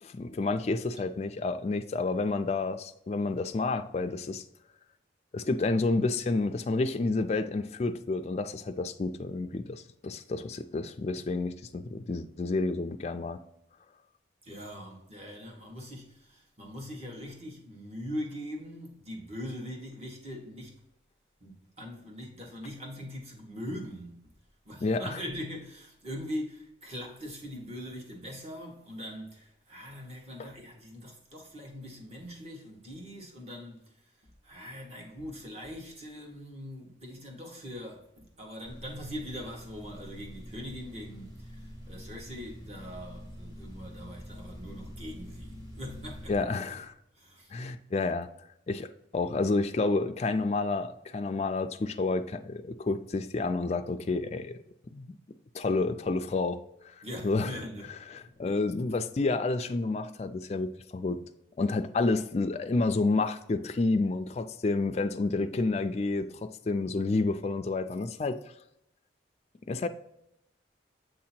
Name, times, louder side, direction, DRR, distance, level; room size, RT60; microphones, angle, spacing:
voice 1, 0.0-4.4 5.3-13.4 24.8-25.1 46.3-46.9 47.5-48.3 48.7-54.6 54.9-55.1 55.5-56.6 57.0-57.5 58.1-61.2 61.6-68.4 69.7-69.9, left 3 dB, 35° left, 0.3 m, -29 dB
voice 2, 14.4-20.8 21.4-24.2 24.6-46.6 47.1-47.6 57.0-58.0 58.3-58.6, equal, 35° right, 1.2 m, -42 dB
sound 1, 38.6-46.4, equal, 15° right, 1.3 m, -45 dB
7.8 x 2.8 x 4.3 m
head